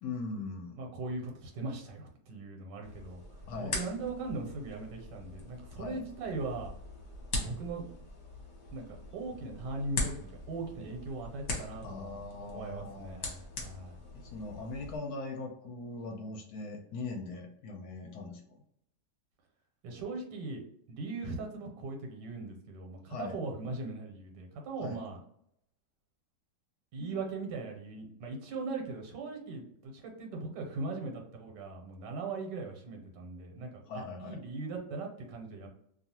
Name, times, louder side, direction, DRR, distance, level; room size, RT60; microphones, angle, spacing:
voice 1, 0.0-0.8 3.5-3.8 5.7-6.0 11.8-13.4 14.1-18.4 23.1-23.4 24.8-25.0 33.8-34.4, left 3 dB, 70° left, 3 dB, 1.0 m, -40 dB
voice 2, 0.7-3.2 3.6-6.7 7.3-7.8 8.7-14.0 19.8-20.6 20.9-25.2 26.9-35.7, right 3 dB, 85° right, 2 dB, 1.4 m, -39 dB
sound 1, 2.8-15.0, left 2 dB, 50° left, 1.0 m, -41 dB
2.7 x 2.4 x 2.8 m, 0.72 s
omnidirectional pair, 1.8 m